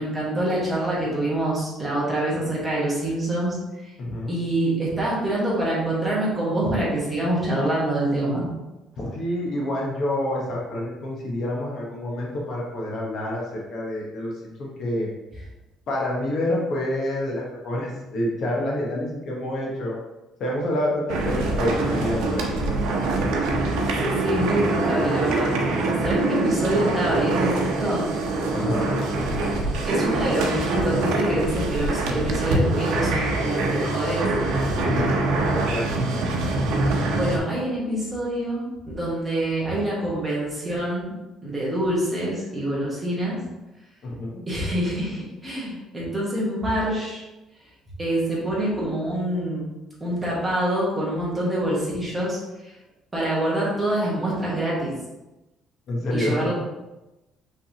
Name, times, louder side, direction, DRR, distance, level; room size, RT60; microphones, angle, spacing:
voice 1, 0.0-3.6 3.8-3.9 4.3-8.5 21.4-21.5 24.0-28.1 29.8-34.3 37.1-41.1 41.4-43.4 44.5-47.2 48.0-49.6 50.0-52.4 52.6-52.8 53.1-54.9 56.1-56.5, right 1 dB, 10° right, -6 dB, 1.3 m, -26 dB
voice 2, 4.0-4.4 9.0-15.1 15.9-20.0 20.4-22.8 28.5-28.9 34.7-36.0 44.0-44.4 55.9-56.5, left 1 dB, 45° left, -2 dB, 0.9 m, -28 dB
sound 1, 21.1-37.4, right 2 dB, 90° right, 0.7 m, -24 dB
5.6 x 3.3 x 2.8 m, 1.0 s
cardioid pair, 170°, 0 cm